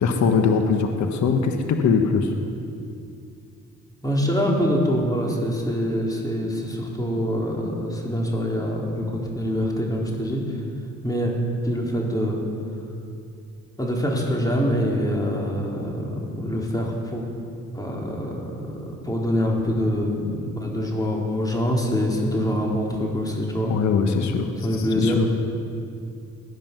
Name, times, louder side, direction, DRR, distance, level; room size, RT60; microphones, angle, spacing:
voice 1, 0.0-2.3 23.7-24.5 25.0-25.3, left 5 dB, 65° left, 5 dB, 1.4 m, -21 dB
voice 2, 4.0-10.6 11.0-11.3 11.6-12.4 13.8-17.2 17.7-23.7 24.6-25.2, equal, 10° left, -2 dB, 3.7 m, -25 dB
20.0 x 10.0 x 6.0 m, 2.5 s
cardioid pair, 90°, 30 cm